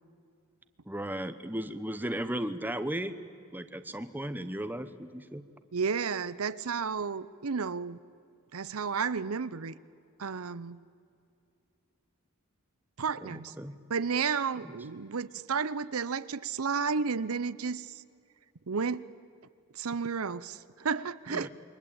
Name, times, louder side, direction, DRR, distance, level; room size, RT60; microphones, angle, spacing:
voice 1, 0.9-3.1 3.5-5.4 13.2-13.7 14.6-14.7 21.3-21.5, right 1 dB, 10° right, 10 dB, 1.1 m, -35 dB
voice 2, 5.7-8.0 8.5-9.7 10.2-10.8 13.0-13.5 13.9-17.9 18.7-19.1 19.7-21.5, right 5 dB, 80° right, 16 dB, 0.7 m, -32 dB
28.5 x 23.0 x 8.8 m, 2.4 s
head